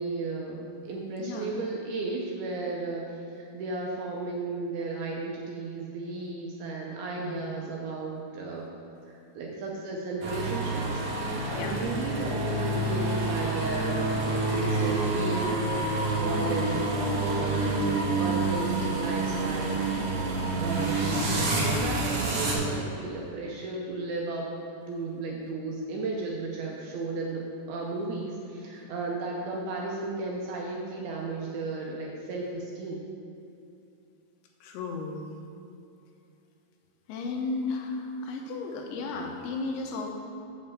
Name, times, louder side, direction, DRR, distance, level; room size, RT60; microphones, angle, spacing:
voice 1, 0.0-8.7 9.0-15.7 16.1-19.8 20.3-24.5 24.9-33.0, right 3 dB, 75° right, -2 dB, 2.3 m, -34 dB
voice 2, 1.2-1.6 7.1-7.5 11.5-11.8 20.4-20.8 34.6-35.2 37.1-40.1, left 3 dB, 80° left, 1 dB, 3.2 m, -34 dB
sound 1, 10.2-22.5, right 2 dB, 60° right, 2.2 m, -28 dB
8.2 x 5.4 x 7.1 m, 2.7 s
omnidirectional pair, 5.2 m